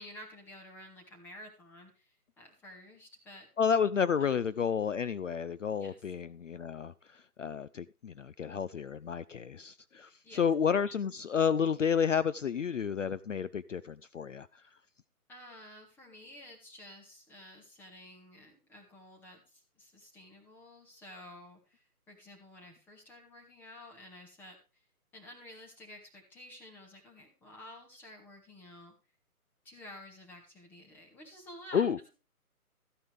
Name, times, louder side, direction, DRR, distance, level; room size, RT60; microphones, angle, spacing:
voice 1, 0.0-3.5 4.2-4.4 5.8-6.0 10.2-10.5 10.8-10.9 15.3-24.8 25.1-28.9 29.6-32.1, left 1 dB, 5° left, 1.5 m, -52 dB
voice 2, 3.6-14.6 31.7-32.0, left 7 dB, 55° left, 0.5 m, -31 dB
14.0 x 9.6 x 3.4 m
figure-of-eight pair, 145°, 45 cm